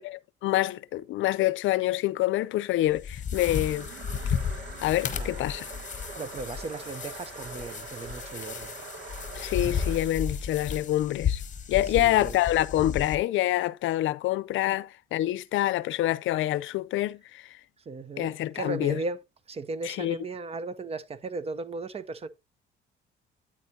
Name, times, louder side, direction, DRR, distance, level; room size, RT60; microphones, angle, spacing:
voice 1, 0.0-3.9 4.8-5.6 9.3-11.4 11.7-17.6 18.2-19.0 19.8-20.2, left 14 dB, 80° left, 0.5 m, -26 dB
sound 1, 2.9-13.2, left 7 dB, 40° left, 1.1 m, -33 dB
sound 2, 3.3-10.1, right 4 dB, 80° right, 2.1 m, -43 dB
voice 2, 5.1-5.5 6.2-8.7 11.8-12.4 17.9-19.2 19.5-22.3, right 3 dB, 30° right, 0.6 m, -36 dB
9.1 x 8.8 x 2.7 m
cardioid pair, 140°, 20 cm